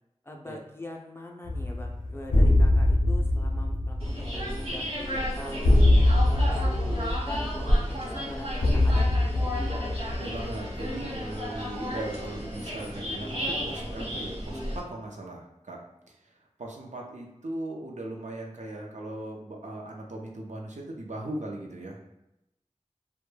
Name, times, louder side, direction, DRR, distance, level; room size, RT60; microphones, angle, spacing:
voice 1, 0.2-9.2, left 1 dB, 20° left, 0 dB, 0.4 m, -42 dB
sound 1, 1.5-10.9, left 1 dB, 85° left, 0.5 m, -23 dB
sound 2, 4.0-14.8, equal, 45° right, 0.8 m, -32 dB
voice 2, 10.1-15.8 16.1-22.1, right 1 dB, 70° right, 0 dB, 0.5 m, -38 dB
2.1 x 2.1 x 3.1 m, 0.87 s
wide cardioid pair, 50°, 13 cm